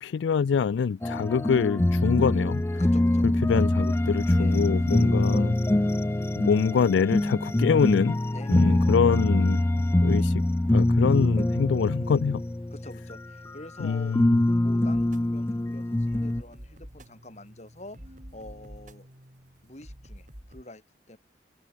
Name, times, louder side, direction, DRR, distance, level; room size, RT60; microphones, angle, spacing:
voice 1, 0.0-2.6 3.2-5.5 6.4-8.2 8.5-9.6 10.0-10.4 10.7-12.4 13.8-14.4, left 6 dB, 85° left, 0.4 m, -25 dB
sound 1, 1.0-13.8 14.1-16.4, left 1 dB, 15° left, 0.3 m, -24 dB
voice 2, 2.8-3.3 4.3-5.2 8.3-8.9 12.7-14.2 14.5-19.1 19.6-21.2, left 1 dB, 40° left, 2.5 m, -46 dB
sound 2, 14.9-20.6, equal, 45° right, 5.8 m, -48 dB
open air
head